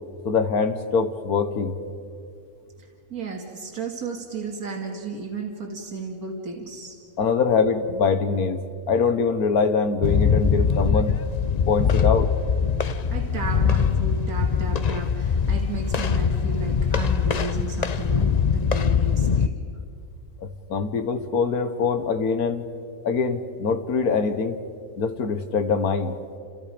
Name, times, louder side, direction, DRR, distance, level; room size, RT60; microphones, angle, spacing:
voice 1, 0.2-1.8 7.2-11.2 11.7-12.3 20.4-22.7 23.0-24.6 25.0-26.2, left 5 dB, 85° left, 9 dB, 1.8 m, -23 dB
voice 2, 2.8-7.0 13.1-19.5, right 4 dB, 90° right, 1 dB, 2.6 m, -34 dB
sound 1, 10.0-19.5, left 6 dB, 40° left, 0.6 m, -22 dB
30.0 x 28.0 x 5.2 m, 2.4 s
omnidirectional pair, 1.5 m